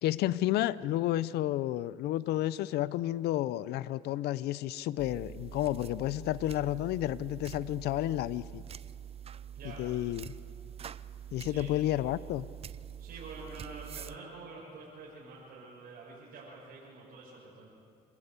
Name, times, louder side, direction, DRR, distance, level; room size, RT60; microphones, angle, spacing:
voice 1, 0.0-8.6 9.8-10.3 11.3-12.5, left 14 dB, 75° left, 18 dB, 0.6 m, -31 dB
sound 1, 5.0-14.2, right 9 dB, 35° right, 0.5 m, -45 dB
voice 2, 11.4-11.8 13.0-17.7, right 3 dB, 60° right, -6 dB, 6.6 m, -47 dB
26.5 x 15.0 x 8.2 m, 2.3 s
cardioid pair, 110°, 17 cm